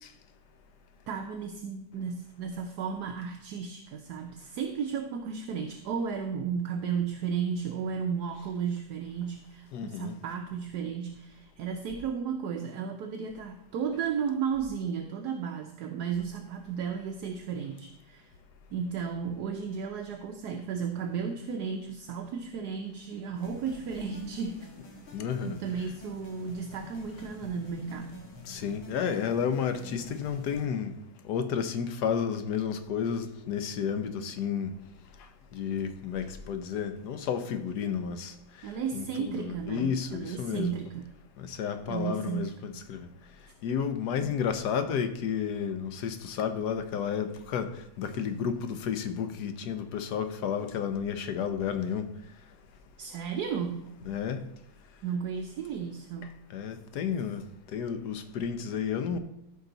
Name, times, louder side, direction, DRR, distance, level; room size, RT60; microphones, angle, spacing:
voice 1, 1.1-18.3 18.7-24.7 25.4-28.3 38.6-41.1 41.9-42.6 44.2-44.3 53.0-53.9 55.0-56.4, right 6 dB, 65° right, 1.1 m, -34 dB
voice 2, 9.7-10.2 25.1-25.6 28.4-31.0 31.2-34.7 35.5-40.7 41.4-43.1 43.6-52.1 54.1-54.4 56.5-57.4 57.7-59.2, left 7 dB, 65° left, 1.2 m, -32 dB
sound 1, 23.3-30.7, left 2 dB, 90° left, 2.6 m, -48 dB
14.0 x 5.5 x 3.9 m
omnidirectional pair, 2.2 m